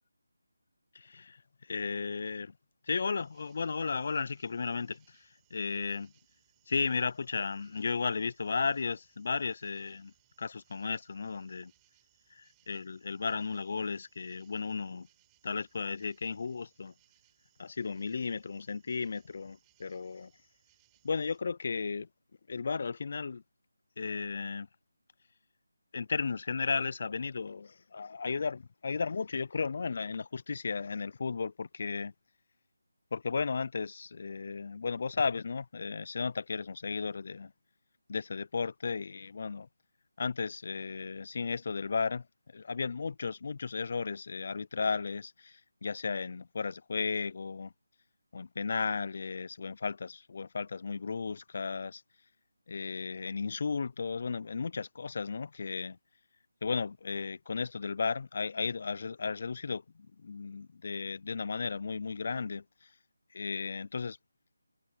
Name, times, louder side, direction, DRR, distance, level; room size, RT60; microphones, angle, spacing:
voice 1, 0.9-1.4 1.7-2.5 2.9-5.2 5.5-6.1 6.7-10.1 10.4-11.7 12.4-15.1 15.4-16.9 17.6-20.3 21.0-22.1 22.5-23.4 24.0-24.7 25.9-32.1 33.1-37.5 38.1-39.7 40.2-42.2 42.5-47.7 48.3-52.0 52.7-56.0 56.6-59.8 60.2-62.6 63.3-64.2, left 5 dB, 45° left, 0.5 m, -34 dB
sound 1, 3.1-21.4, right 37 dB, 15° right, 5.7 m, -71 dB
figure-of-eight pair, 165°, 0 cm